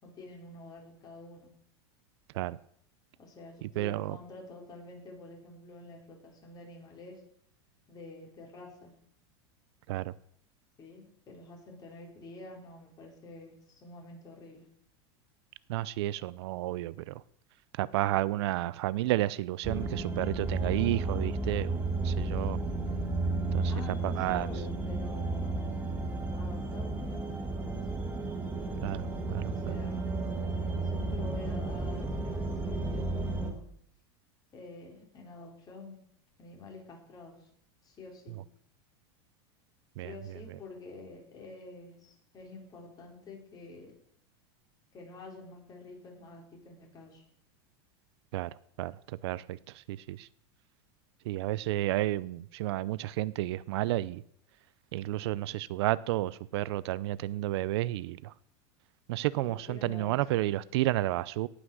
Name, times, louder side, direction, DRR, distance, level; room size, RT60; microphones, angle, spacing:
voice 1, 0.0-1.5 3.2-7.2 7.9-8.9 10.8-14.6 23.7-25.8 26.3-27.7 29.5-30.1 30.8-33.6 34.5-36.0 36.4-37.3 37.8-38.3 40.0-43.9 44.9-47.2 59.4-60.5, left 2 dB, 30° left, 0 dB, 4.3 m, -48 dB
voice 2, 3.8-4.2 9.9-10.1 15.7-17.2 17.8-21.8 22.0-22.6 23.5-23.7 24.0-24.5 28.8-29.7 40.0-40.1 48.3-48.5 48.8-49.6 49.9-50.3 51.3-54.2 54.9-58.3 59.1-61.5, right 16 dB, 75° right, 19 dB, 0.5 m, -31 dB
sound 1, 19.6-33.5, right 3 dB, 15° right, 1.8 m, -33 dB
18.0 x 6.2 x 6.3 m, 0.67 s
supercardioid pair, 140°, 14 cm